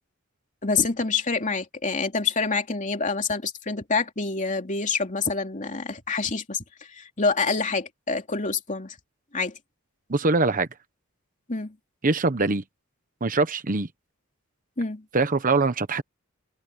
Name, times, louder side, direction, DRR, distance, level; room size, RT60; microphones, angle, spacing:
voice 1, 0.6-6.6 6.9-8.9 9.3-9.6 11.5-11.7 14.8-15.0, left 4 dB, 40° left, 2.9 m, -27 dB
voice 2, 10.1-10.7 12.0-12.6 13.2-13.9 15.1-16.0, right 3 dB, 40° right, 1.1 m, -23 dB
open air
head